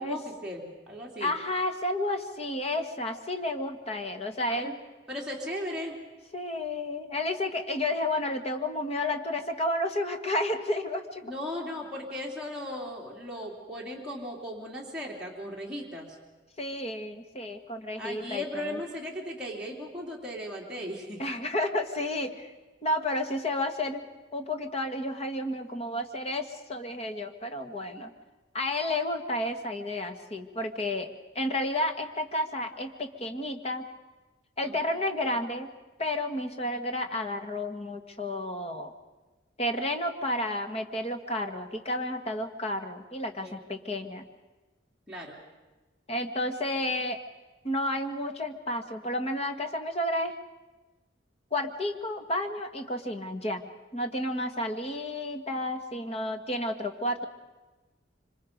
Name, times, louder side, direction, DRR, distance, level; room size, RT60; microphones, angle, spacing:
voice 1, 0.0-1.3 4.5-4.8 5.1-5.9 11.2-16.2 17.9-21.2 34.6-34.8 43.4-43.6 45.1-45.4, left 1 dB, 5° right, -4 dB, 3.0 m, -37 dB
voice 2, 1.2-4.7 6.3-11.2 16.6-18.8 21.2-22.5 22.8-24.0 24.3-28.1 28.5-33.8 34.6-35.7 36.0-38.9 39.6-44.3 46.1-47.2 47.6-50.3 51.5-53.6 53.9-57.2, left 1 dB, 35° left, 5 dB, 1.7 m, -31 dB
26.0 x 25.5 x 5.3 m, 1.2 s
head